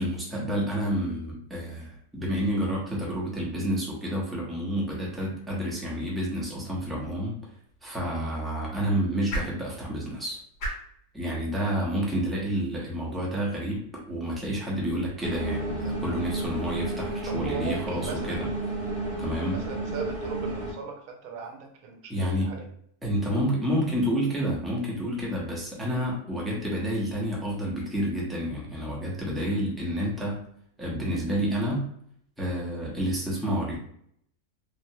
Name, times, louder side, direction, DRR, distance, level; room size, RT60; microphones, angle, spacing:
voice 1, 0.0-7.4 7.8-10.4 11.1-18.5 19.2-19.6 22.1-22.5 23.0-30.4 30.8-31.9 32.4-33.8, equal, ahead, -5 dB, 0.4 m, -29 dB
sound 1, 7.5-13.7, equal, 90° left, 1.5 m, -41 dB
sound 2, 15.2-20.7, right 1 dB, 35° right, 0.9 m, -32 dB
voice 2, 17.3-18.5 19.4-22.7 29.4-29.7, right 6 dB, 75° right, 3 dB, 1.0 m, -38 dB
3.3 x 2.1 x 2.7 m, 0.67 s
omnidirectional pair, 1.6 m